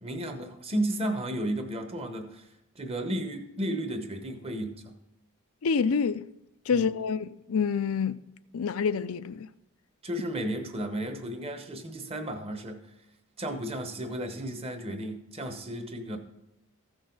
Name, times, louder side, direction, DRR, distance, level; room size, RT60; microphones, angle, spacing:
voice 1, 0.0-2.4 2.8-4.9 6.7-6.9 10.0-12.8 13.4-16.2, right 1 dB, 25° right, 1.0 m, -33 dB
voice 2, 5.6-6.3 6.7-8.2 8.5-9.5, left 6 dB, 70° left, 0.5 m, -27 dB
15.0 x 6.4 x 3.9 m
head